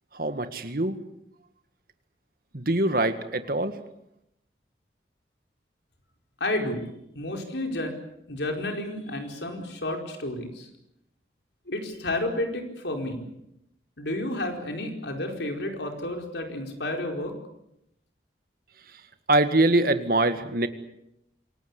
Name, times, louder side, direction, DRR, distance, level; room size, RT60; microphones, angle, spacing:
voice 1, 0.1-1.0 2.5-3.8 19.3-20.7, right 2 dB, 55° right, 9 dB, 1.9 m, -23 dB
voice 2, 6.4-6.9 7.1-7.9 8.3-10.7 11.7-13.3 14.0-17.3, left 1 dB, 85° left, 3 dB, 4.8 m, -31 dB
27.0 x 18.5 x 8.3 m, 0.80 s
head